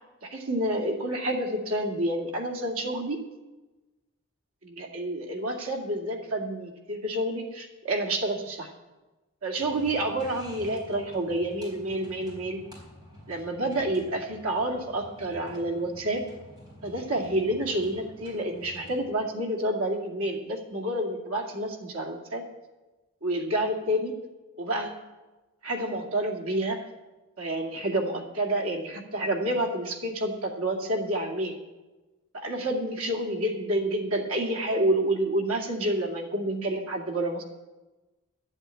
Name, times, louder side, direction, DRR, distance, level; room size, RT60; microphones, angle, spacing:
voice 1, 0.2-3.2 4.6-8.7 9.4-12.6 13.3-16.2 16.8-22.4 23.2-24.1 24.6-24.9 25.6-26.8 27.4-31.6 32.3-37.4, right 1 dB, 90° right, 1 dB, 2.3 m, -29 dB
sound 1, 9.6-19.1, equal, 20° right, 4.4 m, -49 dB
12.0 x 8.1 x 8.9 m, 1.1 s
head